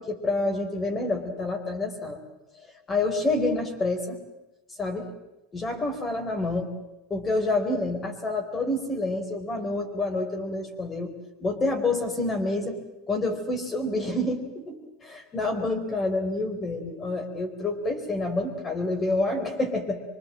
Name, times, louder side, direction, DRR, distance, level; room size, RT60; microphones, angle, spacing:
voice 1, 0.0-2.2 2.9-4.2 4.8-5.1 5.5-6.7 7.1-11.1 11.4-12.8 13.1-20.0, left 2 dB, 25° left, 4 dB, 4.2 m, -28 dB
25.0 x 23.0 x 7.6 m, 0.98 s
hypercardioid pair, 100°, 0 cm